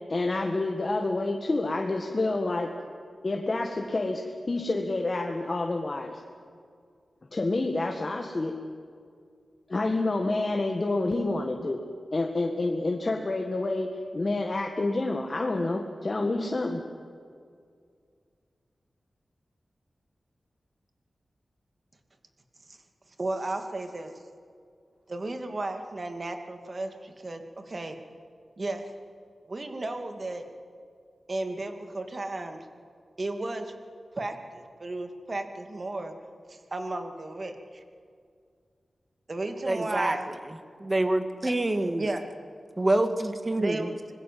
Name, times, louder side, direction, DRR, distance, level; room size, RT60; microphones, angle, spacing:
voice 1, 0.1-2.7 3.2-6.2 7.3-8.5 9.7-11.8 12.1-16.8, left 2 dB, 40° left, 2 dB, 1.9 m, -28 dB
voice 2, 23.2-24.1 25.1-28.0 28.6-28.8 29.5-30.4 31.3-32.6 33.2-33.7 34.2-36.1 36.5-37.8 39.3-40.3 42.0-42.2 43.5-44.1, right 2 dB, 45° right, 6 dB, 2.5 m, -34 dB
voice 3, 39.7-40.2 40.8-42.1 42.8-43.9, right 1 dB, 25° right, 8 dB, 2.0 m, -26 dB
25.5 x 20.5 x 7.7 m, 2.2 s
wide cardioid pair, 85°, 0 cm